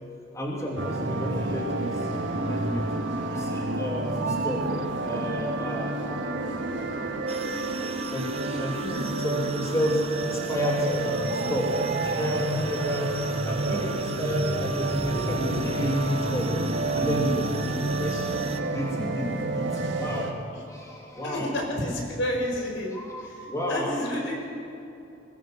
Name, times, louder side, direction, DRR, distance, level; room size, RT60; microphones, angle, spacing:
voice 1, 0.3-2.1 2.4-2.9 3.3-4.6 5.0-11.7 12.0-13.1 13.4-18.3 18.6-19.7 20.0-20.3 20.7-21.5 22.9-23.9, equal, 15° left, -2 dB, 3.0 m, -31 dB
sound 1, 0.8-20.3, right 2 dB, 70° right, 2.0 m, -29 dB
Bird, 1.2-1.8 2.2-2.3 2.5-3.7 4.0-5.8 6.7-6.8 7.4-7.5 7.7-7.8 8.4-8.9 9.9-10.0 10.3-10.4 10.6-12.9 13.3-13.6 13.9-15.3 15.6-15.9, right 6 dB, 50° right, 0.5 m, -36 dB
sound 2, 7.3-18.6, right 6 dB, 30° right, 1.0 m, -41 dB
voice 2, 21.2-22.9 23.2-24.5, left 1 dB, 65° left, 0 dB, 4.8 m, -30 dB
22.5 x 16.5 x 7.9 m, 2.8 s
head